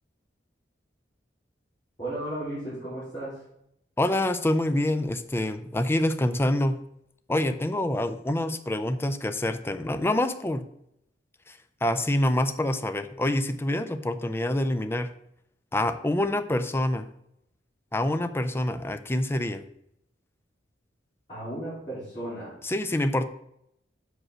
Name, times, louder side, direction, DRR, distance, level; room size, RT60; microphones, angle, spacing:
voice 1, 2.0-3.4 21.3-22.5, right 1 dB, 30° left, -12 dB, 3.3 m, -34 dB
voice 2, 4.0-6.8 7.3-10.6 11.5-15.1 15.7-17.1 17.9-19.6 22.6-23.3, left 1 dB, 15° left, 10 dB, 0.4 m, -26 dB
6.1 x 5.1 x 6.1 m, 0.76 s
head